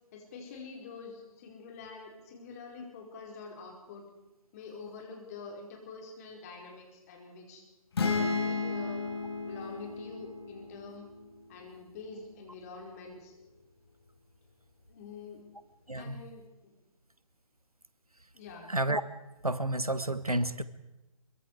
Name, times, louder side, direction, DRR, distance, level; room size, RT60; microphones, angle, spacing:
voice 1, 0.1-4.0 4.5-7.6 8.0-9.0 9.5-11.1 11.5-13.3 14.9-15.4 15.9-16.7 18.3-18.7, left 4 dB, 25° left, 0 dB, 4.8 m, -46 dB
sound 1, 8.0-11.7, left 4 dB, 45° left, 4.0 m, -34 dB
voice 2, 15.9-16.2 18.7-19.0 19.4-20.6, right 1 dB, 90° right, 14 dB, 1.3 m, -30 dB
24.5 x 23.5 x 4.8 m, 1.0 s
figure-of-eight pair, 140°, 18 cm